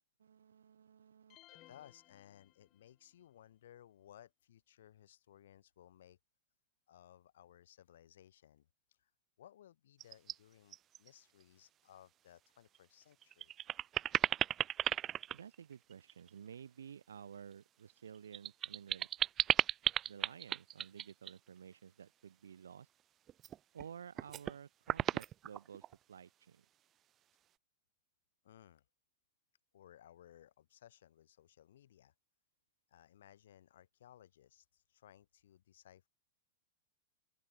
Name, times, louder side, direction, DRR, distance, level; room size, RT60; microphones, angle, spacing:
voice 1, 0.2-1.4 15.3-19.1 20.0-22.9 23.7-26.6, right 8 dB, 65° right, 6.7 m, -53 dB
sound 1, 1.3-3.1, left 18 dB, 35° left, 3.0 m, -63 dB
voice 2, 1.5-6.2 6.9-8.7 9.0-9.1 9.4-13.5 28.4-28.8 29.7-32.1 32.9-36.1, left 11 dB, 60° left, 4.0 m, -61 dB
sound 2, 10.0-10.3 10.7-11.1 11.4-11.5 12.7-12.8 13.2-16.3 17.9-21.4 23.3-23.8 24.2-24.5 24.9-25.9, right 11 dB, 25° right, 0.6 m, -35 dB
open air
figure-of-eight pair, 95°, 0 cm